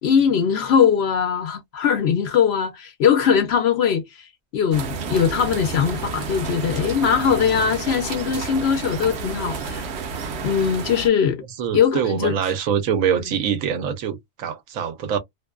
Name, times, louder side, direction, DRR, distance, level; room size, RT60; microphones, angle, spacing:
voice 1, 0.0-9.9 10.4-11.4 11.7-12.4, left 7 dB, 65° left, 0.7 m, -21 dB
sound 1, 4.7-11.1, right 5 dB, 60° right, 0.8 m, -30 dB
voice 2, 11.6-15.2, right 8 dB, 85° right, 1.1 m, -24 dB
2.6 x 2.1 x 2.2 m
omnidirectional pair, 1.4 m